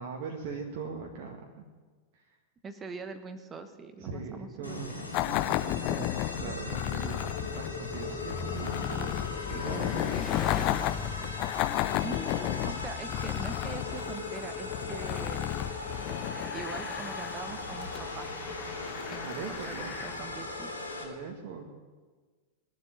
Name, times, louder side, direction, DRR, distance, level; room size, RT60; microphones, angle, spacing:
voice 1, 0.0-1.7 2.1-2.4 4.0-5.1 5.6-6.1 6.4-7.3 7.6-10.2 18.8-18.9 19.2-20.0 21.0-21.7, right 5 dB, 50° right, 1 dB, 1.8 m, -40 dB
voice 2, 2.6-4.9 6.4-6.8 12.0-15.4 16.5-18.6 19.1-20.7, right 4 dB, 20° right, 9 dB, 1.2 m, -43 dB
sound 1, 4.6-21.0, left 2 dB, 85° left, 2.5 m, -39 dB
sound 2, 5.1-17.3, left 15 dB, 40° left, 0.5 m, -33 dB
Bicycle, 6.4-20.8, left 6 dB, 25° left, 1.5 m, -41 dB
20.0 x 7.8 x 9.3 m, 1.4 s
figure-of-eight pair, 90°, 0 cm